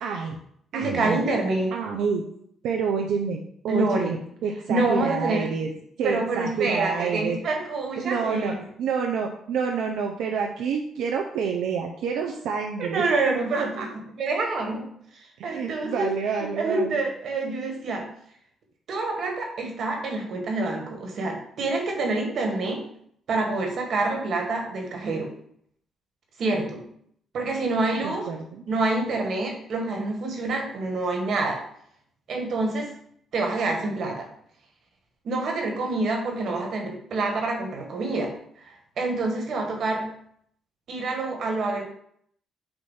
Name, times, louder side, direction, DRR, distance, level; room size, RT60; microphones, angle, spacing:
voice 1, 0.0-0.4 0.7-1.2 1.7-2.2 2.6-5.7 6.0-7.4 8.0-13.1 13.5-13.9 15.4-16.9 28.0-28.6, right 6 dB, 85° right, 2 dB, 0.7 m, -28 dB
voice 2, 0.7-1.7 3.7-4.2 4.7-5.5 6.0-8.6 12.8-14.9 15.1-16.1 16.4-18.1 18.9-22.9 23.3-25.3 26.4-26.9 27.3-28.3 28.7-31.6 32.3-32.9 33.3-34.3 35.2-38.3 38.6-40.1 40.9-41.8, right 2 dB, 65° right, 2 dB, 1.8 m, -27 dB
7.9 x 2.7 x 5.6 m, 0.66 s
cardioid pair, 90°, 0 cm